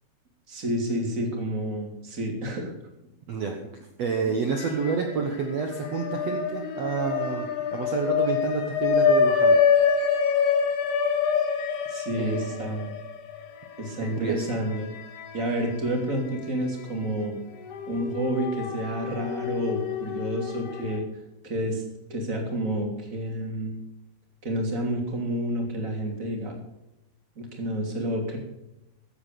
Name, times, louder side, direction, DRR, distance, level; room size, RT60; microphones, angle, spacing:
voice 1, 0.5-2.7 11.9-12.9 13.8-14.9 15.3-17.4 17.9-21.0 21.4-21.8 22.1-23.8 24.4-26.5 27.4-28.4, right 1 dB, 20° right, 1 dB, 2.8 m, -29 dB
voice 2, 3.3-3.7 4.0-9.6 12.1-12.8 14.0-14.5, right 5 dB, 80° right, 3 dB, 1.5 m, -29 dB
sound 1, 4.5-5.3 5.6-16.0 16.4-16.5 17.6-21.0, left 6 dB, 75° left, 3.5 m, -26 dB
14.5 x 8.5 x 6.8 m, 0.90 s
omnidirectional pair, 4.8 m